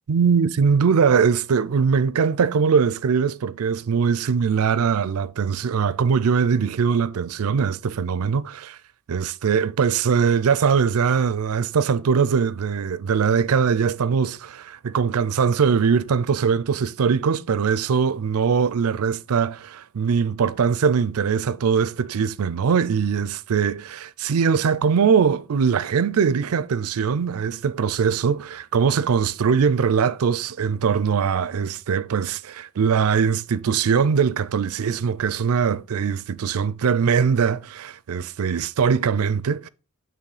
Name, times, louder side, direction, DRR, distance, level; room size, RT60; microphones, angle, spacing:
voice 1, 0.1-8.8 9.1-39.7, right 6 dB, 85° right, 0.4 m, -21 dB
9.1 x 3.1 x 4.8 m
head